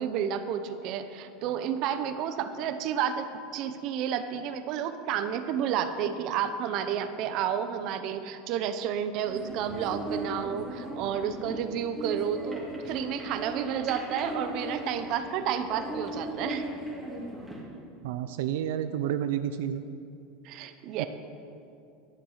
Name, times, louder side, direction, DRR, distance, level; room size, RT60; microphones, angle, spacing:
voice 1, 0.0-16.7 20.4-21.1, right 8 dB, 45° right, 10 dB, 0.7 m, -31 dB
sound 1, 9.3-17.6, right 1 dB, 5° right, 2.1 m, -37 dB
voice 2, 18.0-19.8 21.0-21.1, right 10 dB, 80° right, 10 dB, 0.5 m, -30 dB
11.0 x 10.0 x 5.6 m, 2.5 s
supercardioid pair, 160°, 0 cm